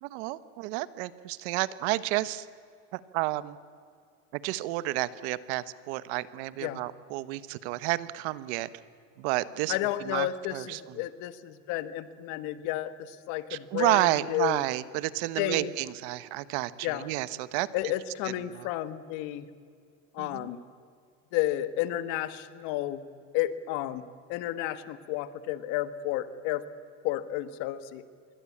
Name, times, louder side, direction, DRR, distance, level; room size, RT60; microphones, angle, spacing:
voice 1, 0.0-2.5 2.9-3.6 4.3-8.7 9.2-10.8 13.5-17.9 18.2-18.7 20.2-20.5, right 17 dB, 60° right, 16 dB, 1.2 m, -31 dB
voice 2, 9.7-14.6 15.4-15.7 16.8-17.1 17.7-19.5 20.1-20.6 21.3-23.0 23.3-26.6 27.0-28.0, left 14 dB, 50° left, 13 dB, 1.5 m, -32 dB
26.5 x 23.0 x 8.6 m, 2.2 s
cardioid pair, 170°, 37 cm